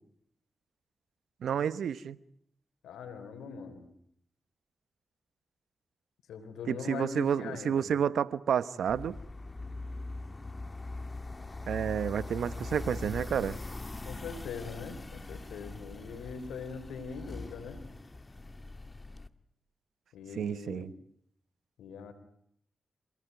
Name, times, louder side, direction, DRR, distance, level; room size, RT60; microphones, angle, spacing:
voice 1, 1.4-2.2 6.7-9.2 11.7-13.6 20.4-20.9, right 8 dB, 80° right, 16 dB, 0.9 m, -30 dB
voice 2, 2.8-3.9 6.3-7.9 14.0-17.8 20.1-21.0 21.8-22.1, left 5 dB, 90° left, 9 dB, 3.7 m, -42 dB
sound 1, 8.9-19.3, left 2 dB, 30° left, 1.7 m, -42 dB
27.5 x 18.0 x 9.4 m, 0.69 s
supercardioid pair, 40°, 0 cm